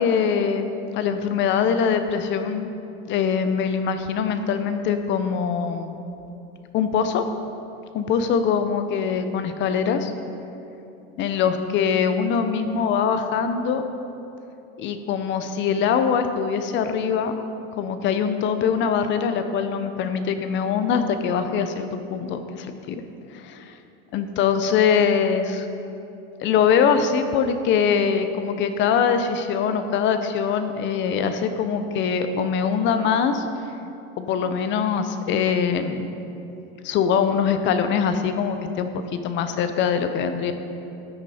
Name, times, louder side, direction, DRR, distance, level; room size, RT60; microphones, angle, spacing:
voice 1, 0.0-2.7 3.1-6.0 6.7-7.2 7.9-10.1 11.2-13.8 14.8-17.3 17.7-23.0 23.3-23.7 24.1-25.7 26.4-33.4 34.2-36.1 36.8-40.5, left 6 dB, 35° left, 9 dB, 0.7 m, -23 dB
15.0 x 9.5 x 4.3 m, 2.8 s
cardioid pair, 160°, 33 cm